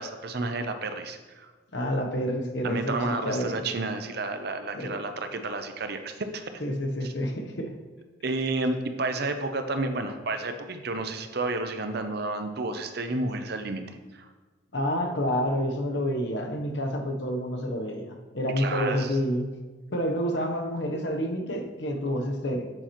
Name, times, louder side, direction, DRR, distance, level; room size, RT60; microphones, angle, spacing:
voice 1, 0.0-1.5 2.6-6.6 7.0-7.1 8.2-13.8 14.1-14.3 18.6-19.2, right 2 dB, 55° right, 8 dB, 0.6 m, -31 dB
voice 2, 1.7-3.6 4.7-5.0 6.6-7.7 14.7-19.5 19.9-22.7, equal, 60° left, 4 dB, 0.9 m, -29 dB
8.6 x 7.9 x 3.0 m, 1.3 s
head